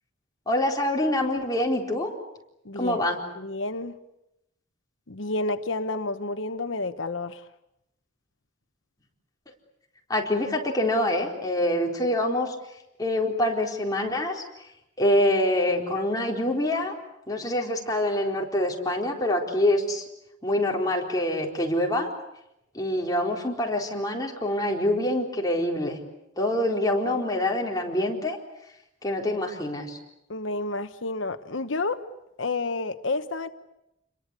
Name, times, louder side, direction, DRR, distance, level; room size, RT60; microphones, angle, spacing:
voice 1, 0.5-2.1 2.8-3.2 10.1-14.7 15.0-16.9 17.3-20.1 20.4-22.1 22.7-26.0 26.4-28.4 28.6-28.7 29.0-30.0, left 1 dB, 20° left, 4.2 m, -25 dB
voice 2, 2.6-3.0 3.4-4.0 5.1-7.5 30.3-32.0 32.4-33.5, left 2 dB, 80° left, 1.2 m, -30 dB
29.5 x 22.5 x 8.4 m
head